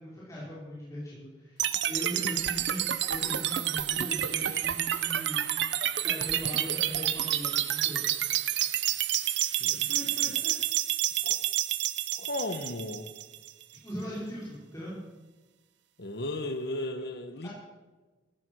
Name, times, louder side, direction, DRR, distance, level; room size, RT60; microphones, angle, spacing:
voice 1, 0.0-2.8 3.1-5.4 6.0-8.0 9.7-10.5 13.8-15.0 17.4-17.5, equal, 15° left, -8 dB, 4.8 m, -40 dB
sound 1, 1.6-13.6, right 12 dB, 65° right, 0.8 m, -29 dB
voice 2, 12.2-13.1 16.0-17.5, left 1 dB, 60° left, 8 dB, 1.1 m, -35 dB
14.5 x 14.5 x 6.2 m, 1.2 s
head